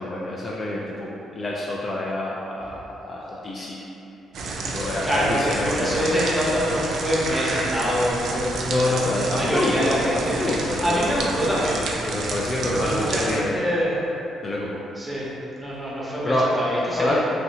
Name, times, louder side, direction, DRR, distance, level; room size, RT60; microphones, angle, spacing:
voice 1, 0.0-3.9 4.6-6.2 8.6-11.2 12.1-13.6 14.4-14.8 16.3-16.5 16.9-17.2, left 2 dB, 40° left, -4 dB, 0.3 m, -27 dB
sound 1, 4.3-13.4, right 3 dB, 70° right, 0.3 m, -30 dB
voice 2, 5.0-8.9 9.3-10.3 10.6-11.8 12.7-14.0 15.0-15.3 15.6-17.2, equal, 5° right, -7 dB, 0.8 m, -25 dB
3.1 x 2.6 x 2.8 m, 2.9 s
cardioid pair, 90°, 0 cm